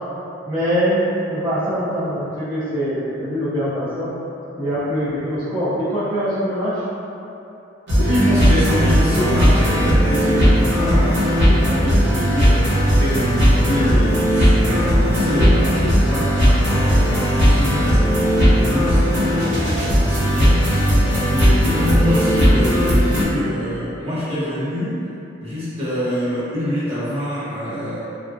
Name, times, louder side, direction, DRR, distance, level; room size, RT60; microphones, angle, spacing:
voice 1, 0.5-1.0 1.3-4.1 4.6-6.8, equal, 10° right, -15 dB, 0.5 m, -23 dB
sound 1, 7.9-23.2, equal, 65° right, 1.0 m, -17 dB
voice 2, 8.0-25.0 25.4-28.0, equal, 30° right, -12 dB, 1.1 m, -25 dB
3.1 x 2.3 x 2.5 m, 2.8 s
head